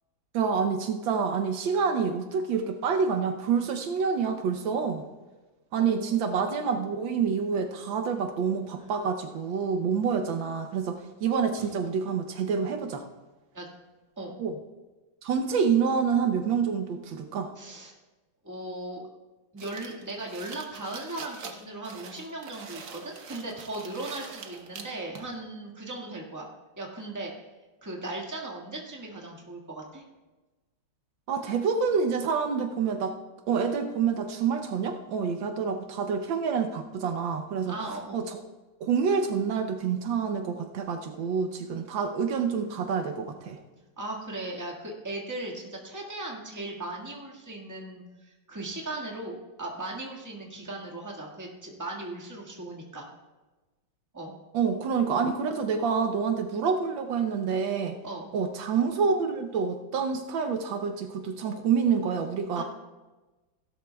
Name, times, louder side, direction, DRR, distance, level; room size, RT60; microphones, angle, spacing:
voice 1, 0.3-5.1 5.7-13.1 14.4-14.5 15.2-17.5 31.3-33.1 33.5-37.7 38.1-38.4 38.8-43.6 54.5-58.0 58.3-62.6, right 6 dB, 75° right, 6 dB, 1.5 m, -27 dB
voice 2, 5.7-6.2 11.6-11.7 13.5-13.7 14.2-14.4 17.6-17.9 18.4-19.1 19.5-26.5 26.8-27.3 27.8-30.0 37.6-38.2 44.0-53.1 54.1-54.3 58.0-58.3 62.5-62.6, right 2 dB, 10° right, -1 dB, 1.5 m, -38 dB
sound 1, 19.6-25.3, right 5 dB, 50° right, 1.1 m, -44 dB
16.5 x 12.0 x 2.3 m, 1.2 s
omnidirectional pair, 2.2 m